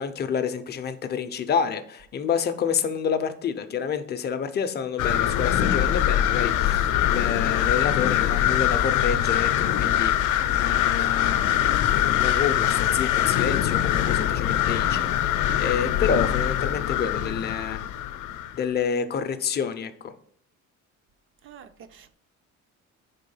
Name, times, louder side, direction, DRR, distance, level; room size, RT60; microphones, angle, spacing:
voice 1, 0.0-11.7 12.2-17.9 18.5-20.1, left 7 dB, 35° left, 0.5 m, -29 dB
sound 1, 5.0-18.6, left 11 dB, 80° left, 0.6 m, -23 dB
voice 2, 10.9-11.4 21.4-22.1, right 7 dB, 45° right, 0.4 m, -49 dB
4.8 x 3.7 x 5.4 m
cardioid pair, 155°, 30 cm